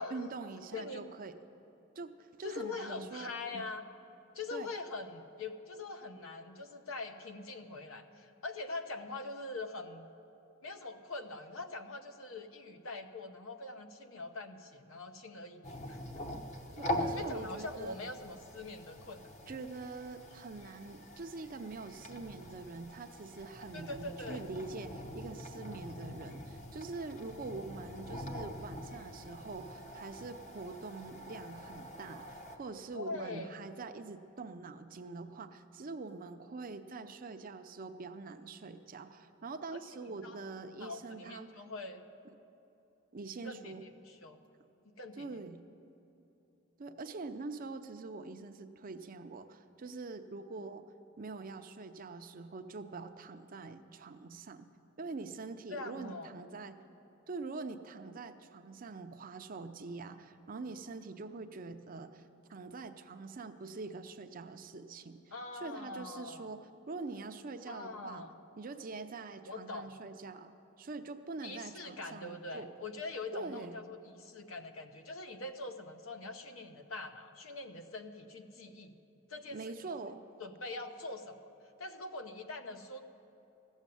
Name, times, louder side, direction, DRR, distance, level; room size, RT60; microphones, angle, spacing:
voice 1, 0.1-1.4 2.0-3.6 4.5-4.7 16.8-18.0 19.5-41.5 43.1-43.9 45.1-45.6 46.8-50.9 51.2-54.7 55.0-56.8 57.3-66.6 66.9-68.3 68.6-70.5 70.8-72.7 73.3-73.8 79.5-80.2, right 3 dB, 40° right, 8 dB, 0.5 m, -44 dB
voice 2, 0.7-1.0 2.4-3.8 4.3-10.1 10.6-16.0 17.2-19.6 23.7-24.4 32.9-33.6 39.7-39.8 40.2-40.4 40.8-42.0 43.4-44.4 44.9-45.3 55.7-56.3 65.3-66.5 67.7-68.3 69.5-70.0 71.4-79.0 79.3-79.7 80.4-81.3 81.8-83.0, left 3 dB, 70° left, 7 dB, 0.8 m, -43 dB
sound 1, 15.6-32.6, left 1 dB, 35° left, 0.9 m, -43 dB
15.0 x 7.3 x 9.1 m, 2.9 s
head